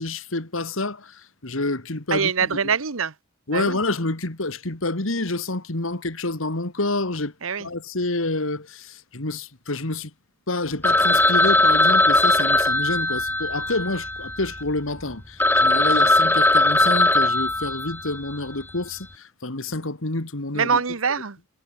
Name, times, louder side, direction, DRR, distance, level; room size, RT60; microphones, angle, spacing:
voice 1, 0.0-2.6 3.5-7.3 7.6-10.1 10.5-20.8, left 2 dB, 75° left, 2.4 m, -28 dB
voice 2, 2.1-3.1 3.5-3.8 7.4-7.7 20.5-21.4, right 6 dB, 80° right, 1.2 m, -24 dB
Telephone, 10.8-14.6 15.1-15.2 15.4-18.3, left 2 dB, 10° left, 0.7 m, -19 dB
head